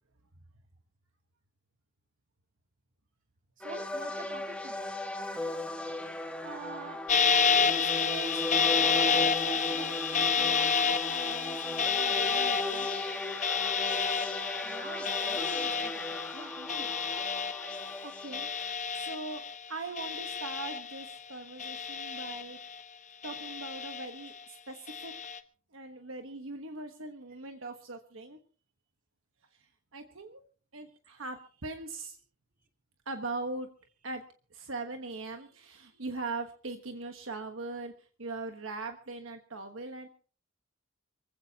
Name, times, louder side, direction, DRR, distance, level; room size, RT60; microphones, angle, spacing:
sound 1, 3.6-18.7, left 1 dB, 5° left, 1.3 m, -37 dB
voice 1, 3.6-4.9 14.6-16.9, right 2 dB, 40° right, 4 dB, 2.7 m, -46 dB
voice 2, 6.4-7.0 7.3-12.9 18.0-19.4 19.7-22.6 23.2-25.1 25.7-28.4 29.9-30.4 30.7-32.2 33.0-33.7 34.0-34.2 34.5-37.9 38.2-40.1, right 3 dB, 70° right, 6 dB, 1.3 m, -41 dB
sound 2, 7.1-19.7 20.0-21.2 21.6-22.8 23.2-24.3 24.9-25.4, left 6 dB, 35° left, 1.0 m, -30 dB
24.5 x 16.0 x 2.9 m, 0.40 s
head